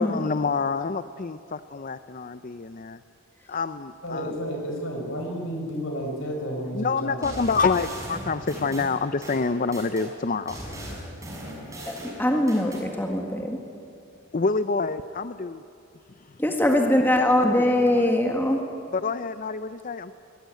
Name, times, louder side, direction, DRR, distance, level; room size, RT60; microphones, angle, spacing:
voice 1, 0.0-3.0 3.5-4.3 6.7-10.6 14.3-15.6 16.1-16.4 17.4-18.1 18.9-20.1, left 4 dB, 40° left, 12 dB, 0.5 m, -27 dB
voice 2, 4.0-7.4, equal, 65° left, 2 dB, 5.5 m, -31 dB
sound 1, 7.2-10.1 10.5-12.8, equal, 15° right, 6.1 m, -38 dB
voice 3, 11.9-13.6 16.4-18.6, left 1 dB, 10° left, 2 dB, 1.7 m, -22 dB
22.0 x 20.0 x 9.4 m, 2.6 s
head